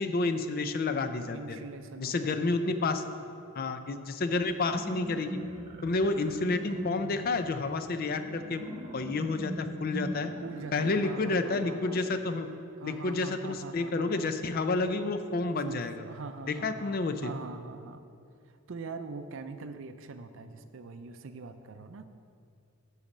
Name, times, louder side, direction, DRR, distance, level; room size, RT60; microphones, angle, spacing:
voice 1, 0.0-1.6 2.0-3.0 3.5-5.3 5.8-8.6 8.9-10.3 10.7-12.5 12.8-15.9 16.6-17.3, left 3 dB, 45° left, 9 dB, 0.4 m, -30 dB
voice 2, 1.3-2.4 10.4-12.1 12.8-14.3 15.6-18.0 18.4-22.1, right 4 dB, 60° right, 9 dB, 0.5 m, -43 dB
sound 1, 4.5-12.4, equal, 30° right, 1.0 m, -41 dB
10.5 x 4.2 x 7.2 m, 2.5 s
head